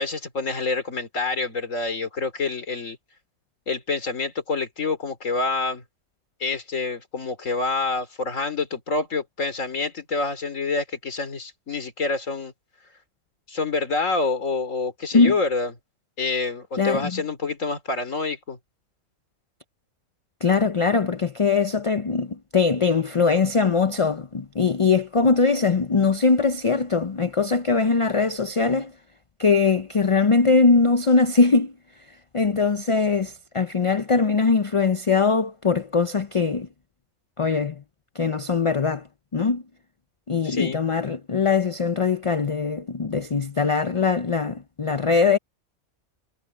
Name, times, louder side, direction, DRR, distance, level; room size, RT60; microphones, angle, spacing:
voice 1, 0.0-3.0 3.7-5.8 6.4-12.5 13.5-15.7 16.2-18.6 40.4-40.8, left 3 dB, 65° left, 3.3 m, -27 dB
voice 2, 16.8-17.2 20.4-28.9 29.4-31.7 32.3-36.7 37.4-37.8 38.1-39.1 39.3-39.6 40.3-45.4, left 4 dB, 35° left, 0.5 m, -21 dB
omnidirectional pair, 1.4 m